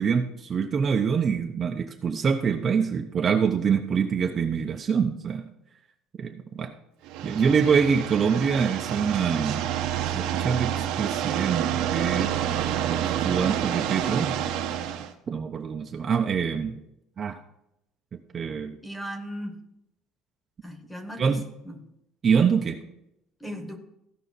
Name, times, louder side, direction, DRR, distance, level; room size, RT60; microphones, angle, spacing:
voice 1, 0.0-5.4 6.2-6.7 7.2-9.7 10.1-12.3 12.9-14.3 15.3-16.8 17.2-17.4 18.1-18.7 21.2-21.4 22.2-22.8, right 6 dB, 30° right, 3 dB, 0.6 m, -25 dB
sound 1, 7.1-15.1, right 10 dB, 75° right, 1.1 m, -28 dB
voice 2, 18.8-19.6 20.6-21.4 21.6-21.8 23.4-23.8, equal, 5° left, 7 dB, 1.2 m, -37 dB
15.5 x 5.6 x 4.1 m, 0.81 s
cardioid pair, 160°, 0 cm